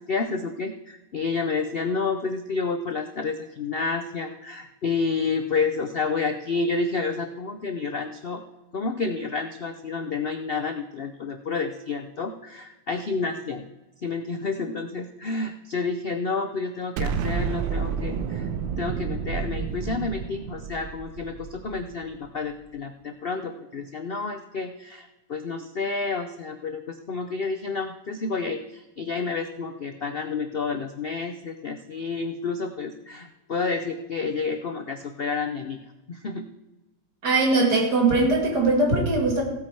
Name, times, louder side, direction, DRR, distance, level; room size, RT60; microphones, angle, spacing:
voice 1, 0.0-8.4 8.7-13.6 14.0-18.5 18.8-36.4, left 4 dB, 60° left, 7 dB, 0.6 m, -30 dB
Explosion, 17.0-22.1, right 6 dB, 85° right, 1.5 m, -30 dB
voice 2, 37.2-39.4, right 2 dB, 60° right, 1 dB, 3.1 m, -21 dB
16.5 x 8.6 x 4.7 m, 1.0 s
omnidirectional pair, 2.0 m